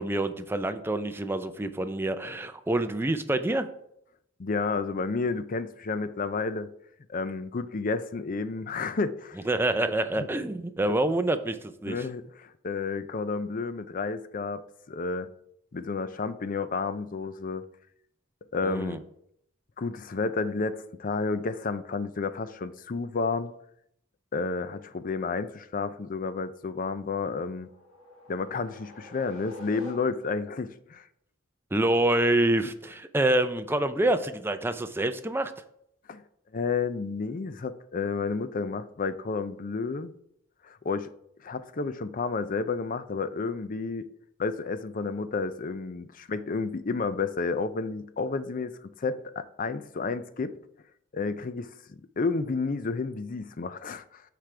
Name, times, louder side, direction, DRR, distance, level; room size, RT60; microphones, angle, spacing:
voice 1, 0.0-3.7 9.5-12.0 18.6-19.0 31.7-35.5, right 1 dB, 10° right, 9 dB, 0.5 m, -26 dB
voice 2, 4.4-6.7 7.1-9.4 9.8-10.3 11.9-14.6 14.9-15.3 15.7-17.6 18.5-19.0 19.8-23.5 24.3-27.7 28.3-31.1 36.1-36.2 36.5-40.1 40.6-41.1 41.4-44.1 44.4-50.5 51.1-54.2, left 4 dB, 40° left, 12 dB, 0.5 m, -31 dB
sound 1, 27.4-30.5, left 1 dB, 70° left, 1.6 m, -47 dB
13.5 x 5.0 x 3.3 m, 0.74 s
head